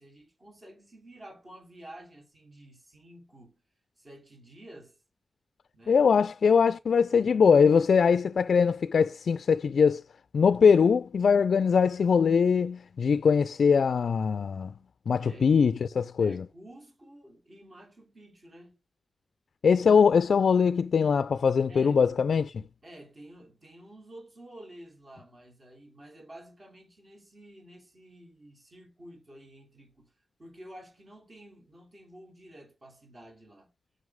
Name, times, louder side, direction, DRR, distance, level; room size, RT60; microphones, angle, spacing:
voice 1, 0.0-3.6 4.0-5.0 5.7-6.1 15.2-15.6 16.2-18.8 21.7-22.0 22.8-30.1 30.4-33.7, right 1 dB, 30° right, 3.5 m, -50 dB
voice 2, 5.9-10.0 10.3-14.7 15.1-16.4 19.6-22.6, left 6 dB, 70° left, 0.3 m, -22 dB
9.5 x 5.5 x 3.6 m
wide cardioid pair, 170°, 0 cm